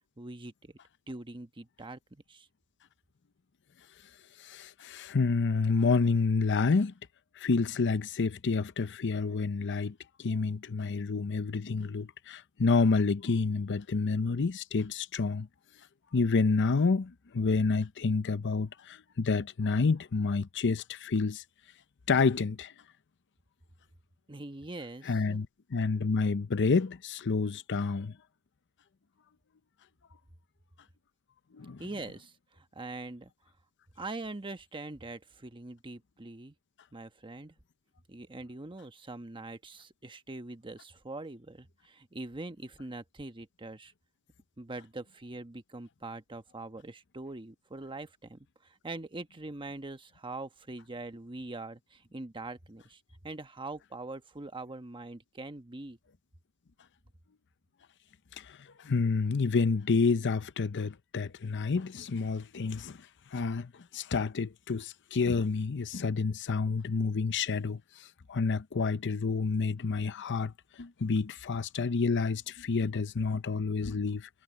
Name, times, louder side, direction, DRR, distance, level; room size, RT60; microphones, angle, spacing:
voice 1, 0.2-0.8 1.1-2.5 24.3-25.4 31.8-33.3 34.0-36.5 36.9-37.5 38.1-43.9 44.6-56.0, right 2 dB, 20° right, 1.1 m, -43 dB
voice 2, 4.4-6.9 7.4-15.5 16.1-21.4 22.1-22.7 25.0-28.1 31.5-31.8 58.3-74.3, left 4 dB, 55° left, 0.6 m, -29 dB
head